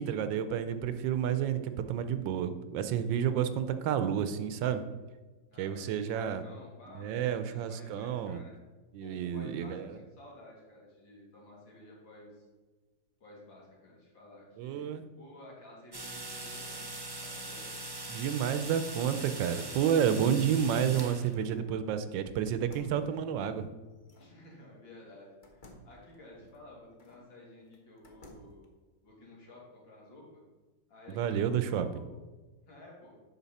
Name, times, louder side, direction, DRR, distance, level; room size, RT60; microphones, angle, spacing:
voice 1, 0.0-4.8 5.6-6.4 6.9-8.4 8.9-10.0 14.6-15.0 18.1-23.7 31.1-31.9, right 8 dB, 80° right, 10 dB, 1.3 m, -30 dB
voice 2, 5.5-8.6 9.0-12.4 13.2-17.9 24.2-28.6 29.0-30.4 30.9-32.2 32.7-33.2, left 1 dB, 80° left, -3 dB, 2.9 m, -53 dB
sound 1, 15.9-21.3, right 2 dB, 20° right, 0.6 m, -41 dB
sound 2, 21.4-21.7 22.5-24.4 25.4-27.3 27.7-28.6, left 1 dB, 40° left, 0.8 m, -56 dB
8.1 x 5.8 x 4.1 m, 1.3 s
omnidirectional pair, 2.1 m